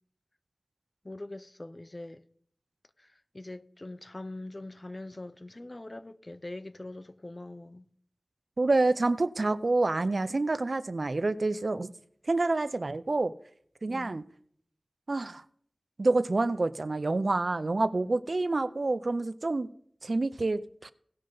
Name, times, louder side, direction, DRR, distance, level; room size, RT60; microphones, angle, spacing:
voice 1, 1.0-2.2 3.0-3.1 3.3-7.9 13.9-14.2 18.1-18.2, left 2 dB, 40° left, 0.6 m, -43 dB
voice 2, 8.6-11.9 12.3-13.3 13.8-14.2 15.1-15.4 16.0-19.7 20.0-20.9, right 2 dB, 65° right, 0.5 m, -27 dB
17.5 x 6.4 x 3.9 m
wide cardioid pair, 50°, 0 cm